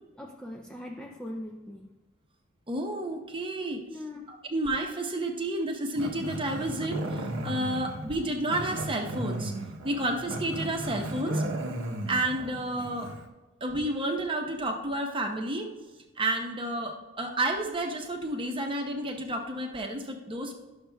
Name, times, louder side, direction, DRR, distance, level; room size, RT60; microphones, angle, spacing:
voice 1, 0.2-1.9 3.9-4.5 11.2-11.4, left 1 dB, 5° left, 1 dB, 0.3 m, -40 dB
voice 2, 2.7-3.8 4.3-9.5 9.8-11.3 12.1-13.1 13.6-15.7 16.2-20.5, right 1 dB, 25° right, 3 dB, 0.7 m, -31 dB
Growling, 5.9-13.3, right 1 dB, 65° right, 0.8 m, -35 dB
11.5 x 6.5 x 2.2 m, 1.1 s
head